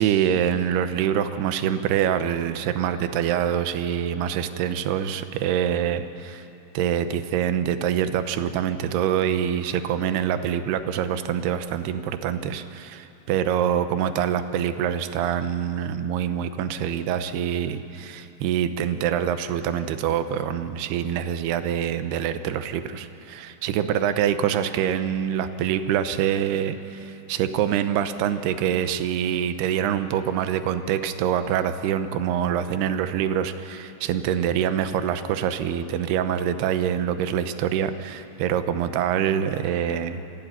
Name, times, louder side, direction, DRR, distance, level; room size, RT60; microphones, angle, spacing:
voice 1, 0.0-6.4 6.7-40.2, right 9 dB, 80° right, 10 dB, 2.4 m, -25 dB
28.5 x 16.0 x 9.3 m, 2.8 s
omnidirectional pair, 5.7 m